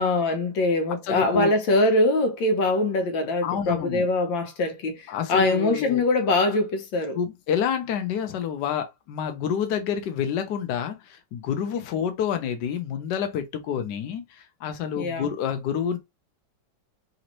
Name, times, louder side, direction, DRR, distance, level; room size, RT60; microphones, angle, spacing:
voice 1, 0.0-7.2 15.0-15.3, left 2 dB, 90° left, 1.7 m, -23 dB
voice 2, 1.0-1.5 3.4-4.1 5.1-6.0 7.1-16.0, left 8 dB, 70° left, 1.3 m, -28 dB
4.1 x 2.6 x 3.0 m
omnidirectional pair, 2.0 m